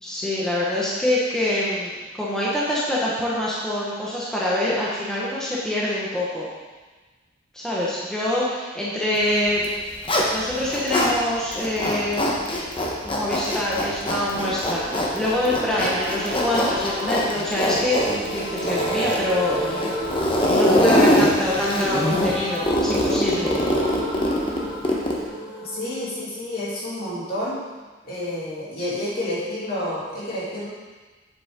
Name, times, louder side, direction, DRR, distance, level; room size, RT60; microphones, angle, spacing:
voice 1, 0.0-6.5 7.5-9.7 10.3-12.3 13.0-20.2 20.5-23.6, left 1 dB, 5° left, -8 dB, 1.3 m, -25 dB
Zipper (clothing), 9.5-11.1 11.5-25.3, left 1 dB, 30° left, 1.1 m, -23 dB
sound 1, 14.2-27.8 28.1-28.2 28.4-28.5, equal, 35° right, 2.7 m, -33 dB
voice 2, 25.6-27.6 28.0-30.7, left 1 dB, 55° left, -7 dB, 2.9 m, -29 dB
8.3 x 7.7 x 3.8 m, 1.3 s
head